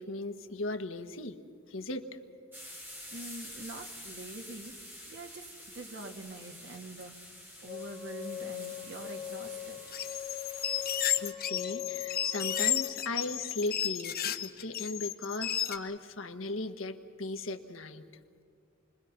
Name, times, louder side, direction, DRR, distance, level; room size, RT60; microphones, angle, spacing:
voice 1, 0.0-1.4 1.7-2.2 11.2-18.0, left 2 dB, 75° left, 7 dB, 1.5 m, -37 dB
sound 1, 2.5-11.3, equal, 10° right, 3.8 m, -48 dB
voice 2, 3.1-4.7 5.1-7.4 7.6-9.8, right 2 dB, 60° right, 4 dB, 2.1 m, -45 dB
sound 2, 7.7-12.9, left 10 dB, 25° left, 2.6 m, -41 dB
sound 3, 9.9-15.8, left 10 dB, 50° left, 1.0 m, -32 dB
29.0 x 22.0 x 6.0 m, 2.2 s
head